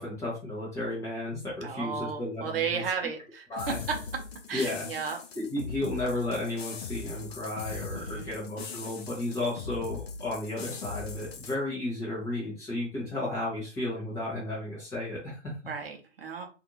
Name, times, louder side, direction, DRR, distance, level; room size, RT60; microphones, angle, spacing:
voice 1, 0.0-2.8 3.5-3.8 4.5-4.9 5.3-15.5, left 1 dB, 10° left, -7 dB, 0.5 m, -33 dB
voice 2, 1.6-3.8 4.5-5.2 7.9-8.3 15.7-16.5, right 6 dB, 50° right, 3 dB, 0.7 m, -34 dB
sound 1, 3.6-11.6, left 5 dB, 55° left, 0.6 m, -40 dB
2.5 x 2.5 x 2.8 m, 0.34 s
figure-of-eight pair, 130°, 36 cm